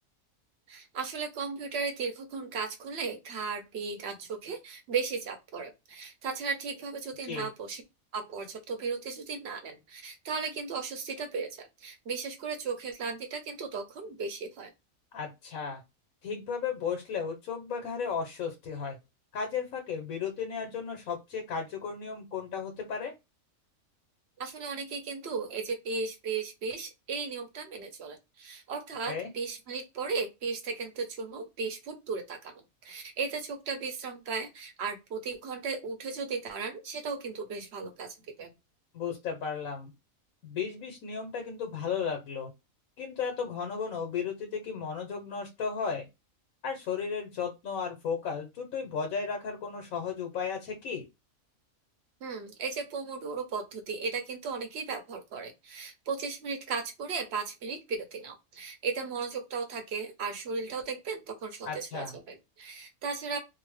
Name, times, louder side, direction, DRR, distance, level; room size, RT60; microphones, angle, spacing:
voice 1, 0.7-7.8 8.1-14.7 24.4-32.5 32.8-38.5 52.2-63.4, right 5 dB, 60° right, 5 dB, 0.9 m, -36 dB
voice 2, 15.1-15.8 16.2-19.0 19.3-23.1 29.1-29.3 38.9-39.9 40.4-42.5 43.0-46.1 46.6-51.1 61.6-62.2, left 6 dB, 80° left, 3 dB, 1.2 m, -34 dB
2.8 x 2.0 x 3.1 m, 0.23 s
omnidirectional pair, 1.4 m